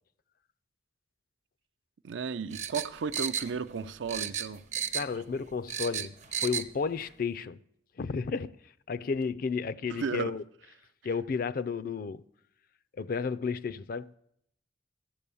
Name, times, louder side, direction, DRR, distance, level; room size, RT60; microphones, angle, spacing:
voice 1, 2.0-4.6 9.9-10.4, right 5 dB, 85° right, 0.5 m, -34 dB
sound 1, 2.5-3.8 4.1-5.2 5.5-6.7 7.0-7.1, right 8 dB, 40° right, 0.6 m, -33 dB
voice 2, 4.9-7.6 8.0-8.6 8.9-10.4 11.0-12.2 13.0-14.2, left 5 dB, 50° left, 0.4 m, -32 dB
13.5 x 7.4 x 7.0 m
head